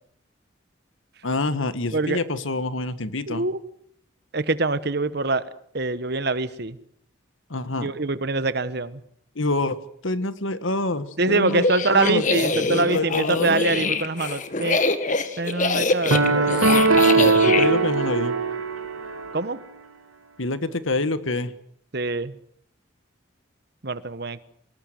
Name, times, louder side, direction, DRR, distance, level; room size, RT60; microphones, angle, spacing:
voice 1, 1.2-3.4 7.5-7.9 9.3-9.8 10.0-12.2 12.7-13.6 17.2-18.4 20.4-21.5, left 2 dB, 75° left, 1.6 m, -26 dB
voice 2, 3.3-3.6 4.3-5.4 5.7-6.8 7.8-9.0 11.2-14.8 15.4-16.7 19.3-19.6 21.9-22.3 23.8-24.4, right 3 dB, 50° right, 1.2 m, -24 dB
sound 1, 11.5-17.7, left 3 dB, 35° left, 1.7 m, -25 dB
sound 2, 16.1-19.3, right 3 dB, 90° right, 2.0 m, -20 dB
24.5 x 20.5 x 7.8 m
head